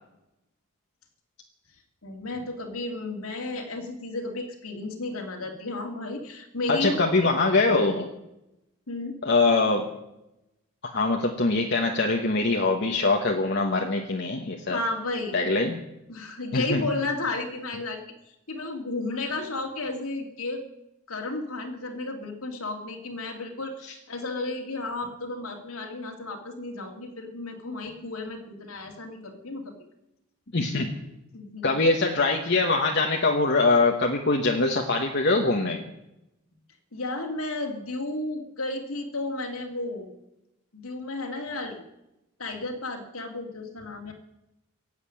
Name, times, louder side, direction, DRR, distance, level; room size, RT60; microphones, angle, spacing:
voice 1, 2.0-7.3 8.9-9.2 14.7-15.5 16.1-18.0 18.5-20.6 21.1-29.7 31.3-31.7 36.9-40.1 40.7-41.8 42.4-44.1, left 2 dB, 80° left, 2 dB, 2.8 m, -33 dB
voice 2, 6.7-8.1 9.2-9.9 10.9-14.8 15.3-15.8 16.5-16.8 30.5-30.9 31.6-35.9, left 3 dB, 50° left, 2 dB, 1.2 m, -23 dB
16.5 x 8.4 x 10.0 m, 0.91 s
head